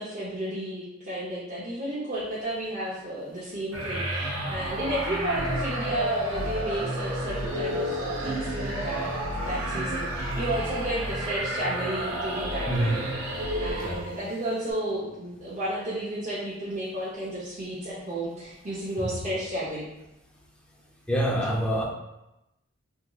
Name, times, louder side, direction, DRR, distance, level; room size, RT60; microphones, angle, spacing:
voice 1, 0.0-9.1 9.4-13.1 13.6-19.9, right 1 dB, 35° right, -9 dB, 0.7 m, -32 dB
sound 1, 3.7-14.3, right 1 dB, 75° right, 0.8 m, -31 dB
voice 2, 12.6-13.0 13.8-14.0 21.1-21.8, right 1 dB, 5° left, -1 dB, 0.5 m, -25 dB
3.6 x 2.9 x 2.3 m, 0.93 s
head